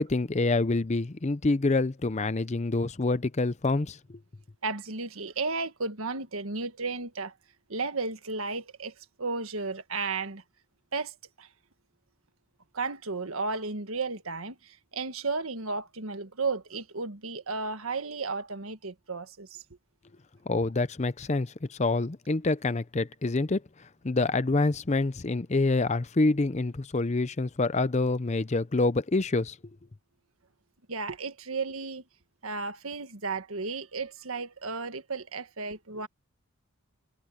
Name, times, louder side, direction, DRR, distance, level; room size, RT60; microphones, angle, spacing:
voice 1, 0.0-4.2 20.5-29.6, left 3 dB, 30° left, 0.6 m, -27 dB
voice 2, 4.6-7.3 7.7-10.4 10.9-11.5 12.7-19.6 30.9-32.0 32.4-36.1, right 4 dB, 80° right, 1.6 m, -34 dB
head